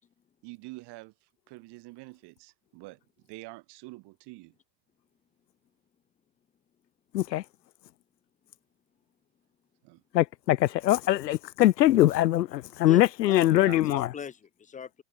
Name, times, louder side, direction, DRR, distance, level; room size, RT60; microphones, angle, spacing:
voice 1, 0.4-4.5 9.8-10.0 13.6-14.0, right 23 dB, 55° right, 3.8 m, -46 dB
voice 2, 10.1-14.1, left 14 dB, 85° left, 0.7 m, -22 dB
voice 3, 12.8-15.0, left 7 dB, 15° left, 0.6 m, -41 dB
hypercardioid pair, 90°, 49 cm